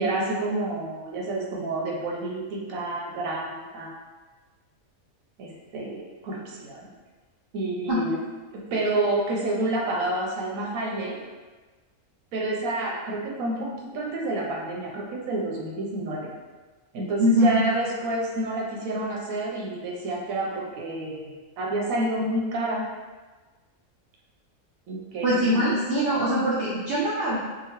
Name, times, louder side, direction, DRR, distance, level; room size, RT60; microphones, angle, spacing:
voice 1, 0.0-3.9 5.4-6.9 7.5-8.2 8.5-11.2 12.3-16.3 16.9-21.3 21.6-22.9 24.9-25.7, right 2 dB, 90° right, -2 dB, 1.0 m, -29 dB
voice 2, 17.2-17.6 25.2-27.4, equal, 60° right, -7 dB, 0.6 m, -22 dB
2.9 x 2.3 x 2.9 m, 1.3 s
omnidirectional pair, 1.4 m